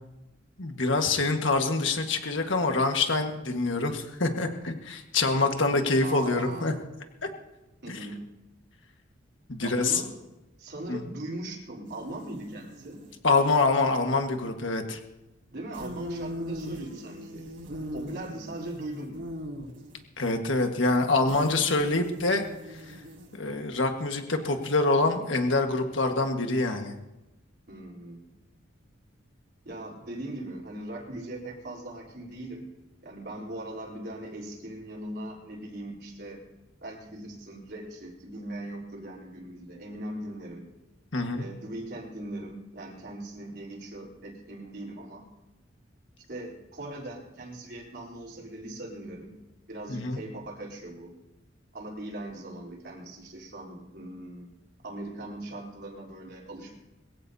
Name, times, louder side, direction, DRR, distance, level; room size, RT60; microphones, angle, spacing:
voice 1, 0.6-6.7 7.2-7.3 7.9-8.0 9.5-10.0 10.9-11.0 13.2-15.0 20.2-22.5 23.3-26.9 41.1-41.4 49.9-50.2, left 3 dB, 70° left, 4 dB, 1.6 m, -25 dB
voice 2, 6.0-6.8 7.8-8.2 9.6-10.1 10.6-13.0 15.5-17.4 17.9-19.2 27.7-28.3 29.7-32.7 33.0-36.4 36.8-40.6 41.3-45.3 46.3-49.4 49.7-51.1 51.7-54.5 54.8-56.8, right 1 dB, 55° right, -2 dB, 3.9 m, -40 dB
sound 1, 11.9-13.2 15.7-20.0 21.3-23.5, equal, 80° right, 4.2 m, -40 dB
22.0 x 16.0 x 2.8 m, 1.0 s
head